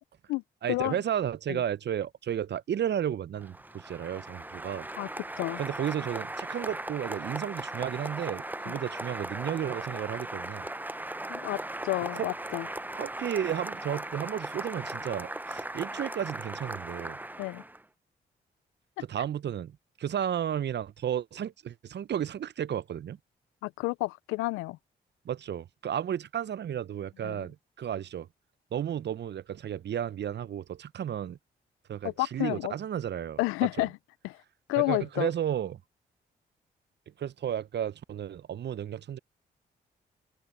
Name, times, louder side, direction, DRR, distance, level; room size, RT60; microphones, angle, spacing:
voice 1, 0.6-4.9 5.6-10.7 12.1-12.3 13.0-17.2 19.1-23.2 25.2-28.3 28.7-31.4 31.9-33.4 33.8-33.9 34.9-35.8 37.2-39.2, right 9 dB, 55° right, 0.7 m, -33 dB
Applause, 3.4-17.8, right 1 dB, 10° right, 0.7 m, -38 dB
voice 2, 11.3-12.7 17.4-17.6 23.6-24.8 27.2-27.5 32.0-32.7 33.4-33.9 34.2-34.4 34.7-35.3, left 22 dB, 85° left, 0.5 m, -30 dB
hypercardioid pair, 40°, 21 cm